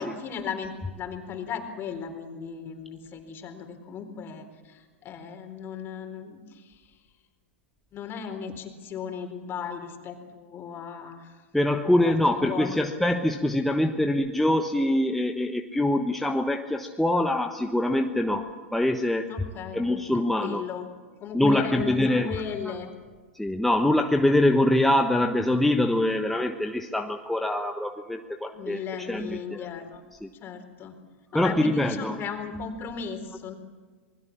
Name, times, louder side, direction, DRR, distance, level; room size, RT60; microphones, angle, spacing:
voice 1, 0.0-7.0 7.9-11.4 12.0-12.9 19.3-19.8 20.1-20.9 21.2-22.9 28.5-30.0 30.4-30.9 31.3-33.5, left 6 dB, 30° left, 6 dB, 4.1 m, -36 dB
voice 2, 11.5-19.3 19.7-20.6 21.3-22.3 22.7-22.8 23.3-29.7 30.2-30.3 31.3-32.2, left 1 dB, 5° left, 4 dB, 1.2 m, -24 dB
27.0 x 20.5 x 7.2 m, 1.5 s
hypercardioid pair, 100°, 7 cm